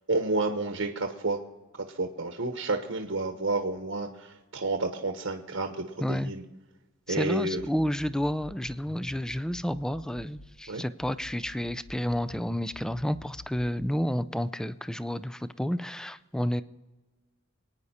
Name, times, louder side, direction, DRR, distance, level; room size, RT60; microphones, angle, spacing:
voice 1, 0.1-1.4 1.8-6.4 7.1-7.6 10.7-10.8, right 2 dB, 70° right, 5 dB, 1.1 m, -30 dB
voice 2, 6.0-6.3 7.1-16.6, equal, 5° left, 13 dB, 0.4 m, -30 dB
sound 1, 7.6-10.6 11.0-14.0, left 2 dB, 60° left, 0.8 m, -49 dB
25.5 x 9.6 x 4.3 m, 1.2 s
head